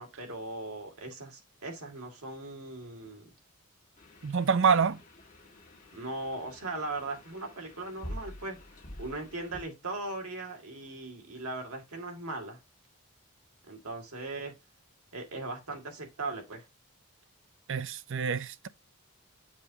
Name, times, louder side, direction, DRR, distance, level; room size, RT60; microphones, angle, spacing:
voice 1, 0.0-3.3 5.9-8.6 9.0-12.6 13.7-14.5 15.1-16.6, right 2 dB, 85° right, 2.4 m, -39 dB
sound 1, 4.0-9.6, left 1 dB, 35° left, 1.6 m, -47 dB
voice 2, 4.2-5.0 17.7-18.7, right 6 dB, 60° right, 0.5 m, -26 dB
7.3 x 3.0 x 4.6 m
head